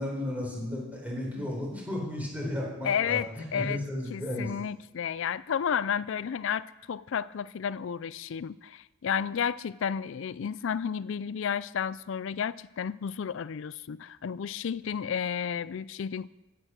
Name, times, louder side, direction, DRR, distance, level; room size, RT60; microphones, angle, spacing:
voice 1, 0.0-4.5, left 1 dB, 5° right, -2 dB, 4.1 m, -34 dB
voice 2, 2.8-3.8 4.1-16.3, left 7 dB, 65° left, 19 dB, 0.4 m, -32 dB
15.5 x 8.8 x 6.2 m, 1.0 s
head